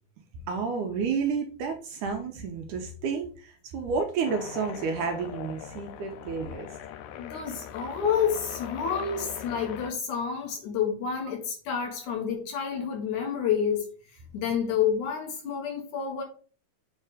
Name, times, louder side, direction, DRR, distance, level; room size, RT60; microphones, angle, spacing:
voice 1, 0.5-6.8, right 5 dB, 75° right, 2.0 m, -31 dB
sound 1, 4.3-9.9, left 10 dB, 90° left, 1.8 m, -41 dB
voice 2, 7.2-13.9 14.3-16.2, left 7 dB, 65° left, 2.6 m, -29 dB
7.4 x 3.3 x 4.8 m
omnidirectional pair, 4.1 m